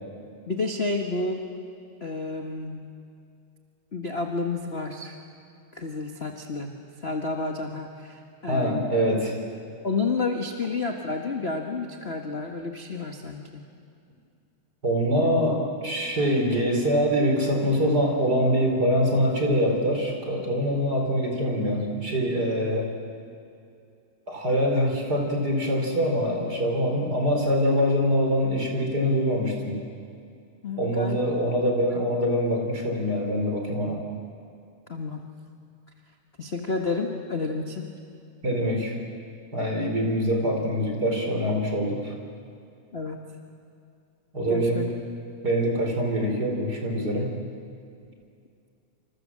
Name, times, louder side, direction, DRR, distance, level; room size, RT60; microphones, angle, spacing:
voice 1, 0.5-1.4 2.0-2.8 3.9-5.2 5.7-6.7 7.0-8.9 9.8-13.6 30.6-31.2 34.9-35.2 36.4-37.9 42.9-43.2 44.5-44.9, left 3 dB, 30° left, 3 dB, 1.3 m, -30 dB
voice 2, 8.5-9.3 14.8-22.9 24.3-29.8 30.8-34.0 38.4-39.0 39.5-42.1 44.3-44.9 45.4-47.3, equal, 30° right, 2 dB, 4.8 m, -24 dB
28.0 x 27.0 x 7.6 m, 2.5 s
omnidirectional pair, 3.3 m